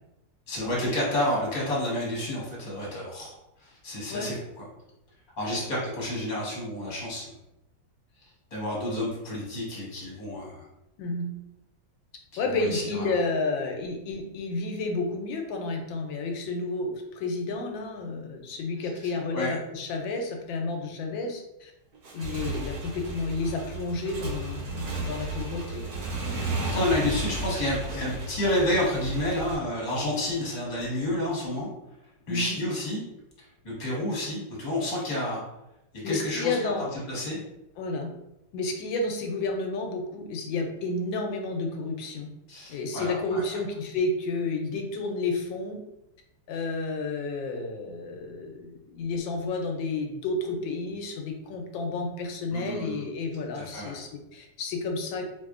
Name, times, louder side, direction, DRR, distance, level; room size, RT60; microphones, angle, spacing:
voice 1, 0.5-3.3 3.6-4.6 5.4-7.2 8.5-10.6 12.5-13.2 19.3-19.5 26.6-31.7 32.3-33.0 33.6-35.4 36.0-36.6 37.1-37.4 42.5-43.6 52.5-53.0 53.5-54.0, left 1 dB, 25° left, -5 dB, 1.2 m, -30 dB
voice 2, 11.0-11.3 12.4-21.7 22.1-25.9 26.6-26.8 32.3-32.6 36.0-36.9 37.8-38.1 38.5-42.3 42.7-45.8 46.5-55.2, left 3 dB, 85° left, 3 dB, 1.3 m, -31 dB
Motorcycle / Engine, 21.9-29.6, right 3 dB, 65° right, 1.2 m, -33 dB
4.1 x 2.6 x 2.4 m, 0.89 s
omnidirectional pair, 2.0 m